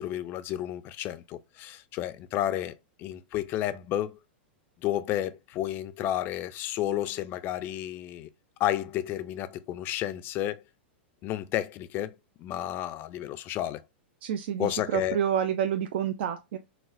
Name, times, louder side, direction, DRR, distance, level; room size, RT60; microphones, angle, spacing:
voice 1, 0.0-4.2 4.8-8.3 8.6-10.6 11.2-13.8 14.6-15.2, left 12 dB, 35° left, 0.3 m, -31 dB
voice 2, 14.2-16.6, right 9 dB, 65° right, 0.4 m, -28 dB
4.0 x 2.1 x 2.5 m
hypercardioid pair, 130°, 6 cm